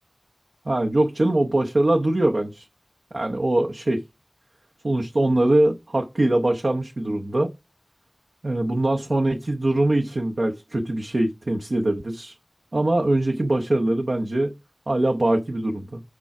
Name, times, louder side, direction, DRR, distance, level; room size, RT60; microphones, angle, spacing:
voice 1, 0.6-2.7 3.1-4.0 4.8-7.5 8.4-12.4 12.7-14.6 14.9-16.0, right 1 dB, 85° right, 0.8 m, -22 dB
6.7 x 4.8 x 5.8 m
wide cardioid pair, 40°, 0 cm